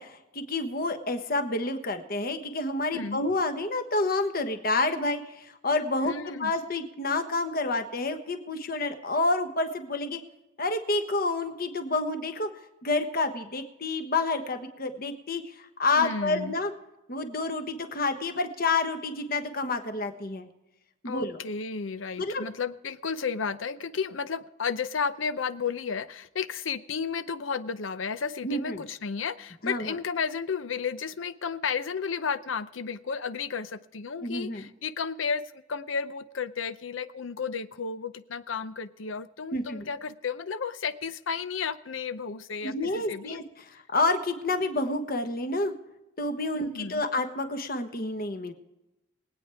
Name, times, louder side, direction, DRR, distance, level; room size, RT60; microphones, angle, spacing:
voice 1, 0.0-10.2 10.6-12.5 12.8-15.4 15.8-16.7 17.1-20.5 21.0-21.4 22.2-22.5 28.4-28.8 29.6-29.9 34.2-34.7 39.5-39.9 42.6-43.4 43.9-45.7 46.2-48.5, left 2 dB, 50° left, 6 dB, 1.3 m, -29 dB
voice 2, 6.0-6.5 15.9-16.5 21.0-43.4 46.5-47.0, left 5 dB, 90° left, 14 dB, 0.7 m, -33 dB
23.0 x 9.0 x 3.5 m, 0.94 s
head